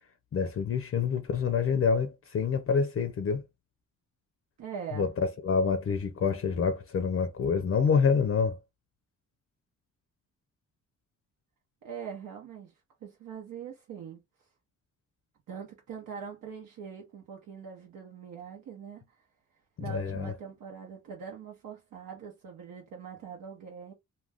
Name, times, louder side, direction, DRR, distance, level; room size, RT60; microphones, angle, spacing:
voice 1, 0.3-3.4 5.0-8.6 19.9-20.3, left 5 dB, 45° left, 0.5 m, -27 dB
voice 2, 4.6-5.1 11.8-12.7 13.0-14.2 15.5-19.3 19.8-23.9, right 7 dB, 75° right, 0.8 m, -42 dB
2.4 x 2.2 x 3.4 m
cardioid pair, 90°, 33 cm